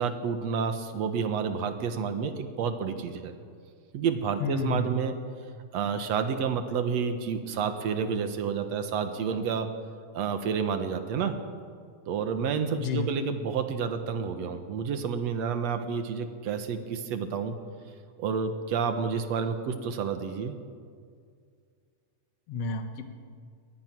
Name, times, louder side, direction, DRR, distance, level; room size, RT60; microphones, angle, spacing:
voice 1, 0.0-3.3 3.9-5.1 5.7-9.7 10.1-11.3 12.1-17.6 18.2-20.5, right 6 dB, 60° right, 8 dB, 2.1 m, -29 dB
voice 2, 4.4-5.0 12.8-13.1 22.5-23.1, left 4 dB, 55° left, 6 dB, 2.3 m, -30 dB
23.0 x 19.0 x 6.1 m, 2.1 s
omnidirectional pair, 3.9 m